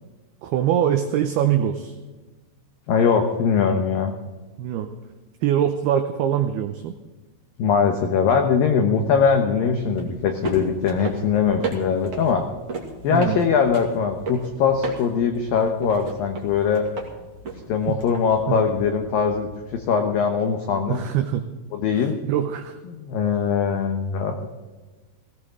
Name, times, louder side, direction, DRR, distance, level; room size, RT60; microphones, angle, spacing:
voice 1, 0.4-2.0 4.6-4.9 5.4-6.9 13.1-13.4 17.9-18.0 18.5-18.6 20.9-21.4 22.3-22.8, right 10 dB, 85° right, 7 dB, 2.2 m, -23 dB
voice 2, 2.9-4.1 7.6-12.4 13.0-16.9 17.7-21.0 21.7-22.2 22.9-24.5, left 6 dB, 85° left, 5 dB, 2.0 m, -21 dB
sound 1, 8.9-19.8, right 3 dB, 45° right, 2.0 m, -36 dB
17.0 x 17.0 x 3.7 m, 1.3 s
omnidirectional pair, 5.5 m